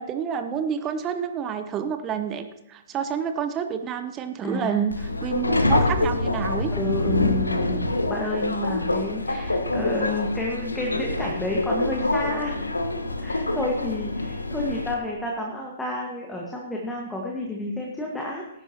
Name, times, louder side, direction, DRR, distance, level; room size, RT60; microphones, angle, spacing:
voice 1, 0.0-6.7, right 7 dB, 20° right, 8 dB, 0.8 m, -29 dB
voice 2, 4.4-4.9 6.7-12.7 13.2-18.4, left 1 dB, 5° left, -2 dB, 1.6 m, -30 dB
Subway metro underground, 4.9-14.9, left 2 dB, 75° left, 1.2 m, -26 dB
18.0 x 10.5 x 2.9 m, 0.88 s
figure-of-eight pair, 115°, 0 cm